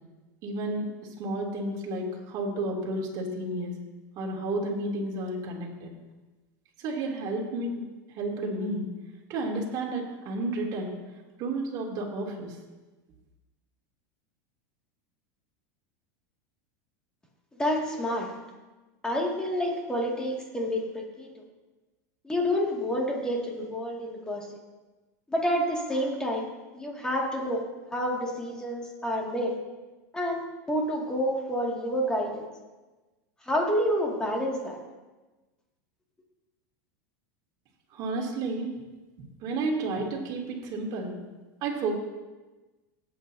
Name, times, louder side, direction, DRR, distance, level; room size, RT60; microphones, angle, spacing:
voice 1, 0.4-0.9 1.2-3.7 4.2-5.9 6.8-7.8 8.2-8.9 9.3-10.9 11.4-12.5 37.9-38.7 39.2-41.2 41.6-42.0, right 2 dB, 45° right, -1 dB, 2.9 m, -31 dB
voice 2, 17.6-18.3 19.0-21.3 22.2-24.5 25.3-26.5 26.7-27.6 27.9-29.5 30.1-32.4 33.5-34.8, equal, 10° left, -2 dB, 2.3 m, -28 dB
17.5 x 9.0 x 2.8 m, 1.2 s
supercardioid pair, 135°, 10 cm